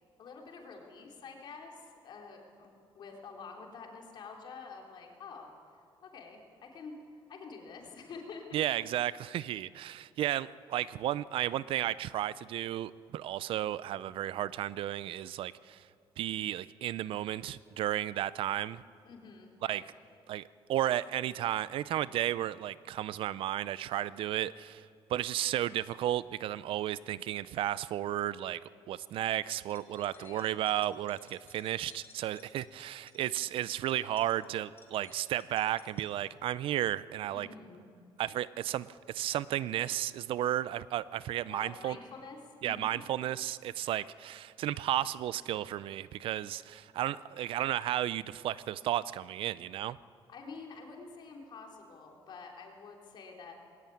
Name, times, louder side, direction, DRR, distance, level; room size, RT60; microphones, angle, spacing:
voice 1, 0.2-5.5 6.0-6.9 7.3-8.5 19.0-19.9 30.1-30.5 37.3-37.8 41.5-43.0 50.3-53.5, left 4 dB, 50° left, 1 dB, 3.6 m, -48 dB
voice 2, 8.5-15.8 16.2-18.8 19.6-19.8 20.3-24.8 25.1-28.6 28.9-37.5 38.2-42.0 42.6-50.0, right 12 dB, 65° right, 18 dB, 0.5 m, -33 dB
sound 1, 29.6-36.1, left 5 dB, 25° left, 2.5 m, -60 dB
20.0 x 17.5 x 9.4 m, 2.5 s
cardioid pair, 160°, 10 cm